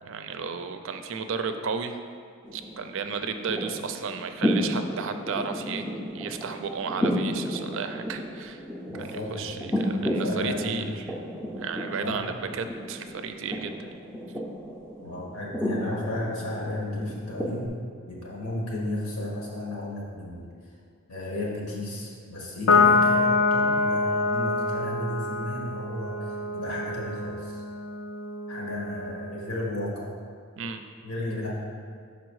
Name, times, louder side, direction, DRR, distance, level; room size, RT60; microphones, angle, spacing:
voice 1, 0.0-2.0 2.5-5.9 6.1-8.6 8.9-11.1 11.6-13.9 30.6-30.8, right 5 dB, 60° right, 8 dB, 0.4 m, -33 dB
sound 1, 2.4-17.7, equal, 5° left, 0.5 m, -32 dB
voice 2, 8.9-10.9 12.0-12.2 15.0-17.7 18.1-20.5 21.1-27.6 28.5-30.1 31.0-31.5, left 1 dB, 85° left, -4 dB, 1.5 m, -34 dB
Piano, 22.7-29.4, left 3 dB, 60° left, 0.5 m, -25 dB
6.1 x 4.1 x 4.7 m, 2.2 s
head